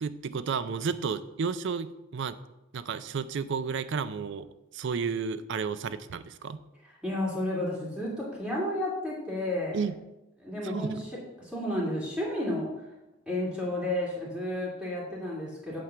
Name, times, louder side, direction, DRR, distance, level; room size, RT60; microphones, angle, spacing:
voice 1, 0.0-2.4 2.7-4.5 4.7-6.6 9.7-9.9 10.6-11.0, right 5 dB, 60° right, 13 dB, 0.4 m, -32 dB
voice 2, 7.0-9.8 10.4-12.7 13.3-15.8, left 1 dB, 5° right, -6 dB, 2.1 m, -32 dB
8.5 x 3.7 x 6.7 m, 0.92 s
head